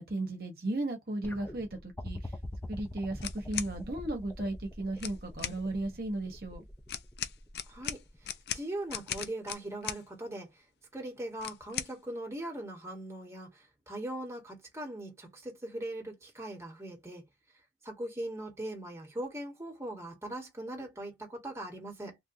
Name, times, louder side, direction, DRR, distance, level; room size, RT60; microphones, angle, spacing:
voice 1, 0.0-2.4 2.7-6.6, right 2 dB, 55° right, 1.0 m, -35 dB
sound 1, 1.2-8.4 9.5-9.6, left 1 dB, 10° left, 0.5 m, -45 dB
sound 2, 3.2-3.7 4.9-5.6 6.9-10.0 11.4-11.9, left 9 dB, 65° left, 0.5 m, -38 dB
voice 2, 7.7-8.0 8.5-10.6 10.9-17.2 17.8-22.2, right 1 dB, 15° right, 1.4 m, -40 dB
3.4 x 2.6 x 2.6 m
head